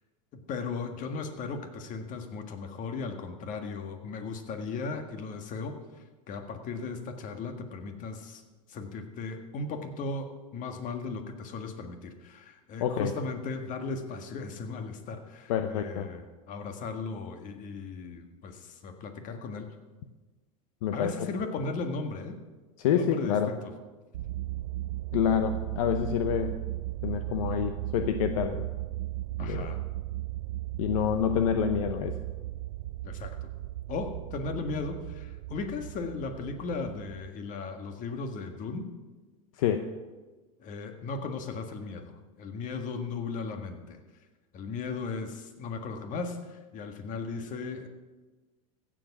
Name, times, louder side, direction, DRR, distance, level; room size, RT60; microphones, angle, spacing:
voice 1, 0.3-8.4 8.7-19.7 20.9-22.4 22.8-23.7 29.4-29.8 33.0-33.5 33.9-38.9 40.6-44.0 44.5-47.9, left 4 dB, 45° left, 6 dB, 1.7 m, -37 dB
voice 2, 12.8-13.1 15.5-16.1 20.8-21.1 22.8-23.5 25.1-26.5 27.0-28.6 29.4-29.7 30.8-32.2 39.6-39.9, left 8 dB, 75° left, 8 dB, 0.8 m, -27 dB
sound 1, 24.1-37.3, right 16 dB, 80° right, 0.5 m, -36 dB
15.5 x 7.6 x 6.0 m, 1.3 s
hypercardioid pair, 100°, 18 cm